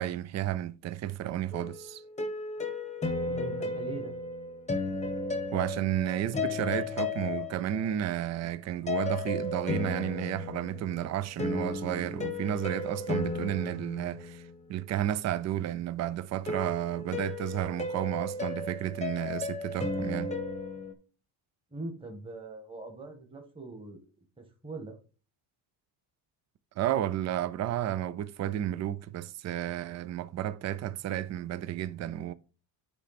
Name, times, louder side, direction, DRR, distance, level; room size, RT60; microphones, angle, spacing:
voice 1, 0.0-2.0 5.5-20.3 26.8-32.3, right 12 dB, 35° right, 0.5 m, -32 dB
sound 1, 1.5-8.1 8.9-14.8 16.5-20.9, left 3 dB, 15° left, 1.0 m, -34 dB
voice 2, 3.3-4.1 21.7-24.0 24.4-25.0, right 3 dB, 10° right, 1.5 m, -41 dB
9.8 x 3.3 x 4.2 m
cardioid pair, 125°, 47 cm